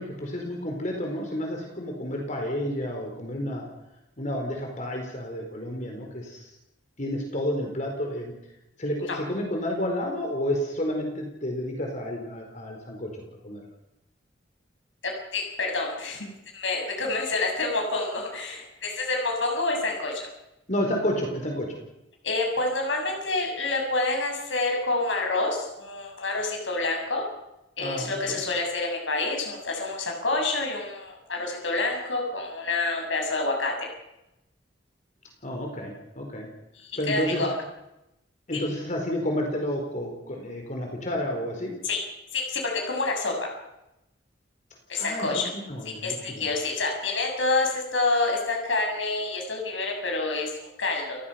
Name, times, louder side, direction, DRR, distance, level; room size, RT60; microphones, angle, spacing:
voice 1, 0.0-3.6 4.2-6.5 7.0-8.3 8.8-13.6 20.7-21.8 27.8-28.4 35.4-36.5 37.0-37.4 38.5-41.7 45.0-46.5, left 1 dB, 40° left, 1 dB, 4.4 m, -30 dB
voice 2, 15.0-16.3 16.5-20.3 22.2-27.2 27.8-33.7 36.8-37.6 38.5-38.6 41.8-42.0 42.3-43.5 44.9-45.5 46.0-51.2, left 3 dB, 80° left, 1 dB, 7.0 m, -28 dB
29.5 x 19.0 x 5.9 m, 0.89 s
head